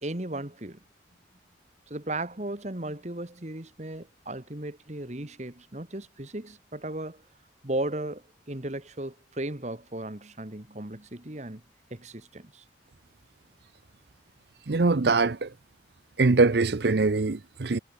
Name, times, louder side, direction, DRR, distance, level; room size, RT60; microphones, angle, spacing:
voice 1, 0.0-0.8 1.9-7.2 7.6-11.6 11.9-12.6, right 1 dB, 40° right, 1.8 m, -36 dB
voice 2, 14.7-15.5 16.2-17.8, right 3 dB, 60° right, 0.7 m, -23 dB
head